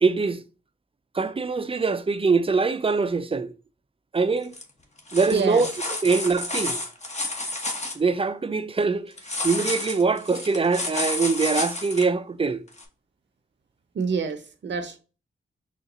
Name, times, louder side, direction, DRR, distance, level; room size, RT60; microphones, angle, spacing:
voice 1, 0.0-0.4 1.1-3.5 4.1-4.5 5.1-5.7 6.0-6.8 7.9-9.1 9.4-12.6, right 4 dB, 30° right, 0.5 m, -23 dB
sound 1, 4.4-4.6 5.0-8.0 9.2-12.0 12.8-12.9, left 2 dB, 35° left, 1.1 m, -30 dB
voice 2, 5.3-5.7 13.9-15.0, right 5 dB, 65° right, 0.8 m, -26 dB
4.1 x 2.5 x 3.8 m
cardioid pair, 55°, 20 cm